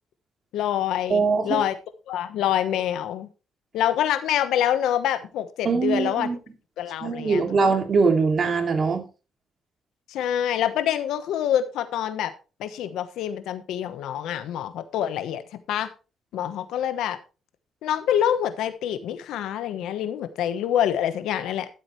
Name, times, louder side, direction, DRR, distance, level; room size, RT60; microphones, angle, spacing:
voice 1, 0.5-1.7 2.1-3.3 3.7-6.3 6.8-7.5 10.1-12.3 12.6-15.4 15.7-15.9 16.3-17.2 17.8-21.7, left 10 dB, 85° left, 1.1 m, -26 dB
voice 2, 1.1-1.6 5.6-6.4 7.0-9.1, right 4 dB, 50° right, 2.4 m, -22 dB
12.5 x 8.0 x 3.2 m
cardioid pair, 85°, 0 cm